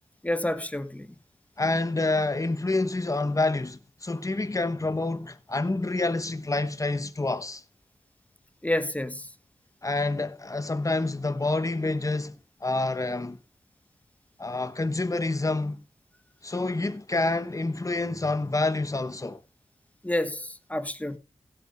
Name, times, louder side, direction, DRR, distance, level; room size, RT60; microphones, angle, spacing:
voice 1, 0.2-1.1 8.6-9.3 20.0-21.2, left 1 dB, 15° left, 1.3 m, -29 dB
voice 2, 1.6-7.6 9.8-12.3 12.6-13.4 14.4-15.8 16.4-19.4, left 2 dB, 30° left, 1.2 m, -27 dB
16.0 x 8.2 x 3.6 m
cardioid pair, 50°, 11 cm